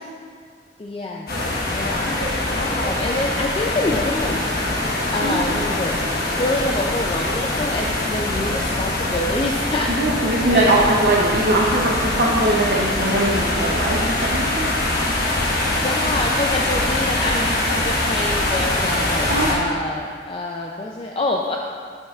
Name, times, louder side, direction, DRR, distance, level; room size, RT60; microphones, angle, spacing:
voice 1, 0.8-1.3 1.6-2.2 2.5-4.4 5.1-6.0 6.4-11.0 15.7-21.6, left 2 dB, 30° left, 0 dB, 0.3 m, -26 dB
sound 1, 1.3-19.5, left 1 dB, 50° left, 1.2 m, -23 dB
voice 2, 9.9-14.7 19.3-19.5, right 1 dB, 50° right, -3 dB, 0.6 m, -20 dB
11.5 x 5.4 x 2.4 m, 2.1 s
head